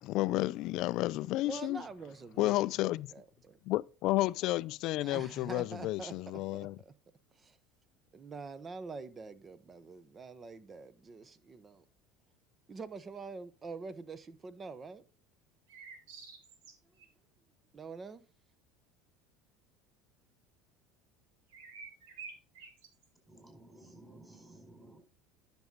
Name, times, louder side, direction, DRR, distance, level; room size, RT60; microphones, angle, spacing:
voice 1, 0.0-1.8 2.4-3.1 3.7-6.8, left 17 dB, 60° left, 0.4 m, -31 dB
voice 2, 1.4-3.6 5.0-6.9 7.3-7.6 8.1-11.8 12.7-15.0 17.7-18.2, right 4 dB, 30° right, 0.9 m, -46 dB
sound 1, 15.7-17.1 21.5-23.1, right 5 dB, 80° right, 1.8 m, -49 dB
voice 3, 23.3-25.0, right 1 dB, 10° right, 4.8 m, -55 dB
10.5 x 6.2 x 4.0 m
hypercardioid pair, 80°, 0 cm